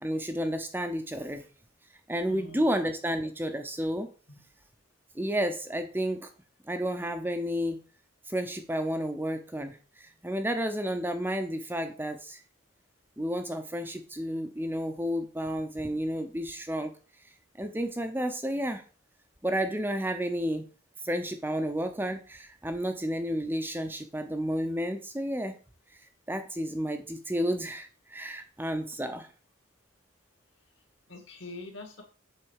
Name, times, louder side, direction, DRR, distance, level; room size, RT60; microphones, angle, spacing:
voice 1, 0.0-1.4 2.1-4.1 5.1-6.3 6.7-7.8 8.3-12.4 13.2-16.9 17.6-18.8 19.4-20.7 21.0-25.5 26.3-29.3, equal, 10° right, 6 dB, 0.7 m, -31 dB
voice 2, 2.3-2.7 4.3-4.4 31.1-32.0, left 2 dB, 60° left, 3 dB, 2.2 m, -44 dB
7.7 x 4.0 x 6.5 m, 0.36 s
head